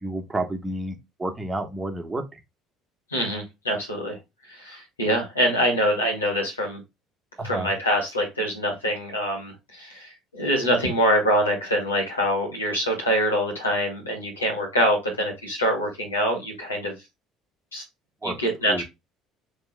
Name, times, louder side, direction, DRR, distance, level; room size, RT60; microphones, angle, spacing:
voice 1, 0.0-2.4 7.4-7.7 18.2-18.4 18.7-18.8, right 2 dB, 15° right, 1.2 m, -30 dB
voice 2, 3.1-4.2 4.5-6.8 7.4-16.9 17.7-17.8 18.2-18.8, equal, 85° left, 1.9 m, -25 dB
6.6 x 3.6 x 2.2 m
figure-of-eight pair, 55°, 0 cm